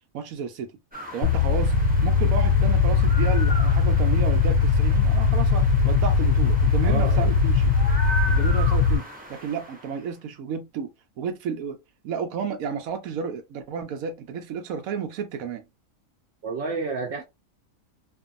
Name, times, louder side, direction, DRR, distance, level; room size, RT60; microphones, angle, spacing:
voice 1, 0.1-0.7 1.1-1.7 2.0-7.7 8.3-9.0 9.3-10.9 11.2-11.8 12.0-15.7, right 6 dB, 90° right, 1.1 m, -32 dB
sound 1, 0.9-10.1, right 1 dB, 10° right, 0.5 m, -37 dB
sound 2, 1.2-9.0, left 5 dB, 65° left, 0.8 m, -20 dB
voice 2, 6.8-7.3 16.4-17.2, right 4 dB, 60° right, 0.9 m, -30 dB
2.5 x 2.5 x 2.4 m
omnidirectional pair, 1.4 m